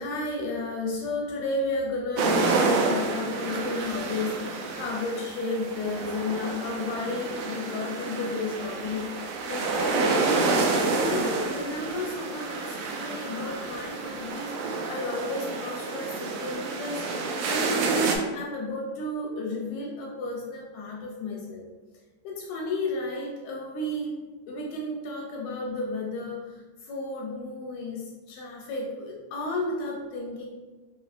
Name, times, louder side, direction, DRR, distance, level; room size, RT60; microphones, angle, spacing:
voice 1, 0.0-10.3 10.9-17.1 17.5-21.6 22.2-24.1 24.5-26.4 26.9-30.5, left 2 dB, 80° left, -2 dB, 1.7 m, -32 dB
sound 1, 2.2-18.2, right 3 dB, 90° right, 1.4 m, -29 dB
4.8 x 3.5 x 2.4 m, 1.2 s
omnidirectional pair, 3.5 m